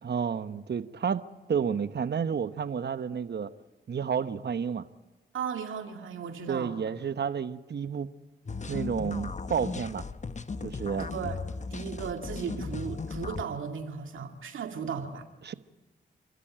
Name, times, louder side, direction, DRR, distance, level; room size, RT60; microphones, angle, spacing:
voice 1, 0.0-1.2 1.5-3.5 3.9-4.9 6.5-8.1 8.7-10.0 10.6-11.1 15.4-15.5, right 7 dB, 55° right, 12 dB, 1.1 m, -30 dB
voice 2, 5.3-6.7 11.0-11.4 11.7-15.2, right 7 dB, 80° right, 5 dB, 2.2 m, -36 dB
sound 1, 8.5-13.4, left 4 dB, 35° left, 1.1 m, -36 dB
29.5 x 13.5 x 9.0 m, 1.1 s
supercardioid pair, 45°, 20 cm